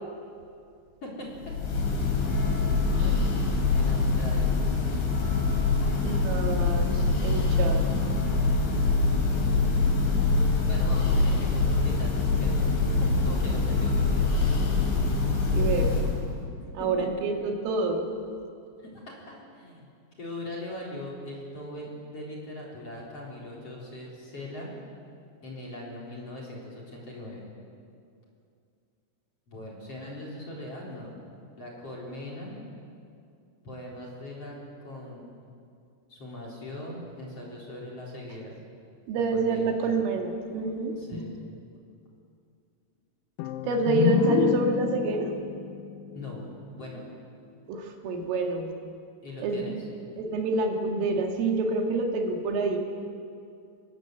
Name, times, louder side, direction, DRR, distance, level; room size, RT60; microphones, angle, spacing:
voice 1, 1.0-1.5 3.7-4.6 5.8-6.9 10.6-12.7 13.0-14.7 16.8-17.1 18.8-19.9 20.2-24.7 25.4-27.5 29.5-31.2 31.5-32.6 33.6-34.5 34.8-35.2 36.1-38.6 39.3-39.7 41.0-41.4 46.1-46.5 46.7-47.0 49.2-49.9, left 1 dB, 30° left, -2 dB, 4.5 m, -40 dB
Church bell, 1.4-16.3, left 3 dB, 70° left, 6.3 m, -24 dB
voice 2, 6.0-7.8 15.5-15.9 16.7-18.0 39.1-41.2 43.7-45.3 47.7-48.7 49.4-49.8 50.2-52.8, right 3 dB, 75° right, 2 dB, 4.5 m, -27 dB
sound 1, 43.4-47.1, left 11 dB, 90° left, 2.3 m, -29 dB
25.5 x 20.5 x 8.1 m, 2.4 s
omnidirectional pair, 5.9 m